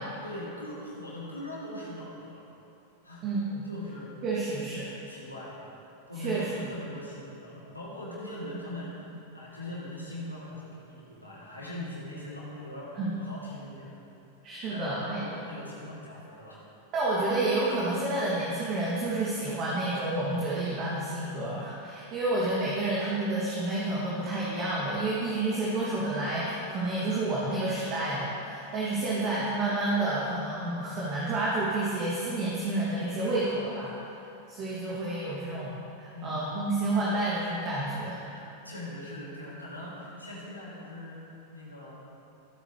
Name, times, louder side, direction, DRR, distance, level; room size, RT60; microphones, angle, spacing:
voice 1, 0.2-2.5 3.0-3.2 3.6-4.1 4.9-13.9 14.6-16.6 36.1-36.5 38.6-41.9, left 1 dB, 85° left, -7 dB, 3.0 m, -41 dB
voice 2, 3.2-3.7 4.2-4.9 6.1-6.5 12.9-13.1 14.4-15.2 16.9-33.9 34.5-38.2, right 2 dB, 35° right, -6 dB, 2.7 m, -29 dB
26.0 x 9.1 x 3.4 m, 2.8 s
figure-of-eight pair, 90°, 0 cm